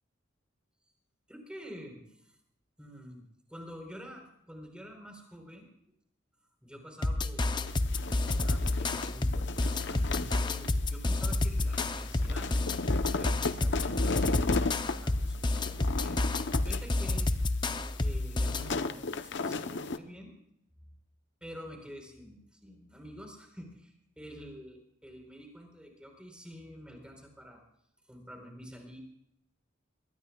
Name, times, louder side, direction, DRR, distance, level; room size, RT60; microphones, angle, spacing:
voice 1, 1.3-2.4 2.8-5.7 6.6-7.7 8.2-12.5 13.0-16.2 16.5-17.4 18.0-20.3 21.4-27.6 28.1-29.0, equal, 5° right, 2 dB, 4.0 m, -48 dB
sound 1, 7.0-18.7, left 2 dB, 25° left, 0.6 m, -30 dB
sound 2, 7.7-20.0, left 3 dB, 60° left, 0.8 m, -36 dB
22.5 x 19.5 x 2.3 m, 0.75 s
head